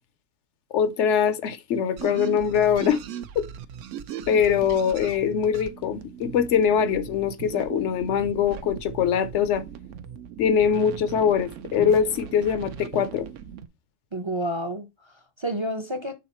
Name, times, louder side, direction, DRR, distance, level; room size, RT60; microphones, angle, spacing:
voice 1, 0.7-3.0 3.4-3.5 4.3-9.6 10.4-13.3, left 7 dB, 70° left, 0.9 m, -23 dB
sound 1, 2.0-13.7, right 9 dB, 80° right, 0.9 m, -39 dB
voice 2, 14.1-16.1, right 1 dB, 30° right, 0.6 m, -30 dB
6.4 x 3.8 x 4.3 m
omnidirectional pair, 1.3 m